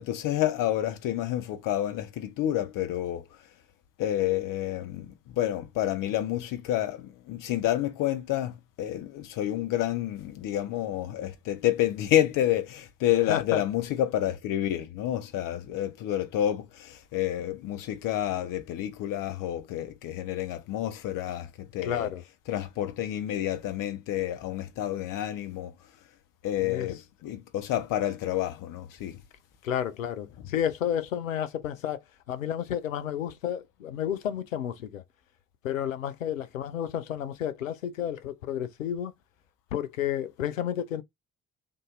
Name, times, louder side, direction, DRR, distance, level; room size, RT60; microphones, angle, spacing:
voice 1, 0.0-3.2 4.0-22.1 22.5-25.7 26.4-29.2, left 12 dB, 55° left, 0.9 m, -29 dB
voice 2, 13.3-13.6 21.8-22.2 26.6-26.9 29.6-32.0 32.3-35.0 35.6-39.1 39.7-41.0, left 10 dB, 85° left, 0.5 m, -31 dB
3.7 x 2.6 x 3.7 m
figure-of-eight pair, 45°, 39 cm